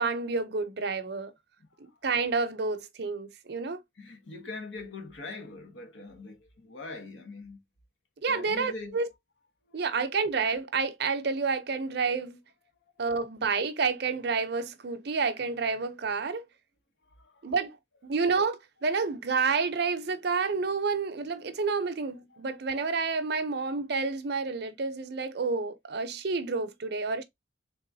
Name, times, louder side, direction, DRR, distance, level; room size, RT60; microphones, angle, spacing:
voice 1, 0.0-1.3 2.0-3.8 8.2-9.1 9.7-12.4 13.0-16.4 17.4-17.8 18.0-27.2, right 4 dB, 55° right, 0.6 m, -29 dB
voice 2, 4.0-7.6 8.2-9.0 9.7-9.8 17.2-17.5 22.3-22.4, left 3 dB, 75° left, 1.1 m, -42 dB
3.5 x 3.0 x 2.6 m
head